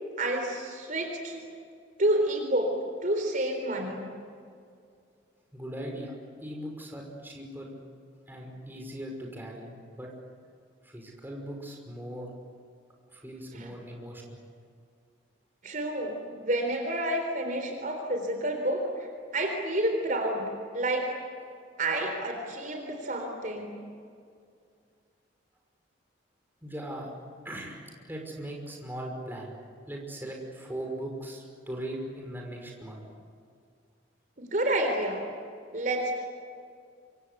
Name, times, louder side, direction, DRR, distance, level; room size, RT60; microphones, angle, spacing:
voice 1, 0.2-1.4 2.0-2.7 3.0-4.1 13.5-13.7 15.6-20.4 20.7-21.2 21.8-23.8 34.4-35.2 35.7-36.2, right 1 dB, 45° right, 4 dB, 3.9 m, -29 dB
voice 2, 5.5-6.1 6.4-7.8 8.3-10.1 10.8-12.3 13.1-14.4 26.6-27.1 27.4-29.5 29.9-33.0, right 1 dB, 10° right, 0 dB, 5.7 m, -39 dB
27.5 x 26.0 x 8.4 m, 2.3 s
head